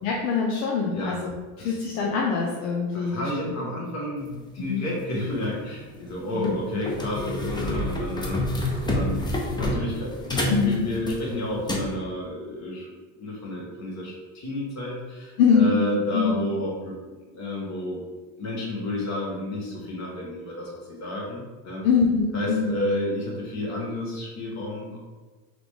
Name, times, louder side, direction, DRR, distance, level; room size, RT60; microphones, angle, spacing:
voice 1, 0.0-3.3 4.6-4.9 6.3-6.6 10.5-10.8 15.4-16.5 21.8-22.7, left 5 dB, 85° left, -2 dB, 0.7 m, -24 dB
voice 2, 2.9-12.9 13.2-18.0 18.4-21.8 22.3-25.0, left 1 dB, 45° left, -3 dB, 1.5 m, -31 dB
sound 1, 5.3-5.5 6.1-6.2 6.4-11.9, left 1 dB, 10° left, 0.6 m, -28 dB
3.9 x 3.1 x 3.5 m, 1.3 s
supercardioid pair, 115°, 40 cm